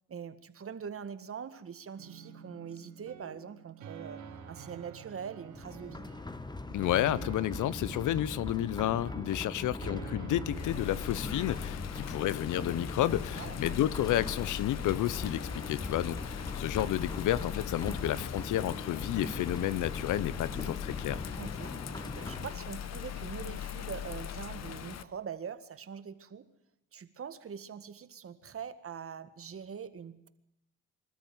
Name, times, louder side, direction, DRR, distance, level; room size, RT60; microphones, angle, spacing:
voice 1, 0.1-4.2 4.5-6.1 9.5-9.8 11.9-12.3 13.3-13.6 17.8-18.0 20.5-20.6 21.4-21.7 22.1-26.5 26.9-30.3, right 7 dB, 45° right, 1.9 m, -43 dB
sound 1, 2.0-11.6, right 7 dB, 90° right, 4.9 m, -49 dB
sound 2, 5.5-22.6, left 2 dB, 15° left, 1.2 m, -40 dB
voice 2, 6.7-21.2, left 13 dB, 80° left, 0.9 m, -31 dB
Bird vocalization bird call bird song / Rain, 10.4-25.0, left 10 dB, 60° left, 1.2 m, -40 dB
26.0 x 13.5 x 9.5 m
cardioid pair, 90°, 30 cm